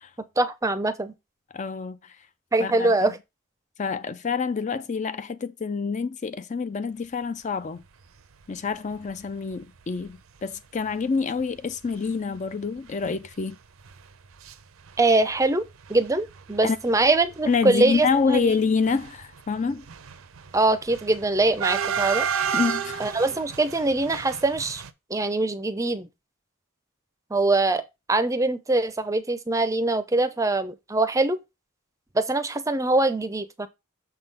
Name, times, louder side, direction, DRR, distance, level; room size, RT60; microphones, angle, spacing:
voice 1, 0.2-1.1 2.5-3.2 15.0-15.6 15.9-18.5 20.5-22.3 23.0-24.8 25.1-26.1 27.3-27.8 28.1-31.4 32.1-33.7, right 2 dB, 15° right, 0.5 m, -23 dB
voice 2, 1.5-2.2 2.6-3.1 3.8-7.8 8.5-13.6 16.6-16.8 17.5-19.8 22.5-23.1, left 5 dB, 35° left, 0.4 m, -27 dB
sound 1, 8.9-9.1 9.6-9.7 9.9-10.1 10.9-11.0 11.4-11.6 11.8-12.0 12.3-14.5 14.8-15.5 15.8-24.9, right 7 dB, 85° right, 0.6 m, -32 dB
6.6 x 3.7 x 5.4 m
head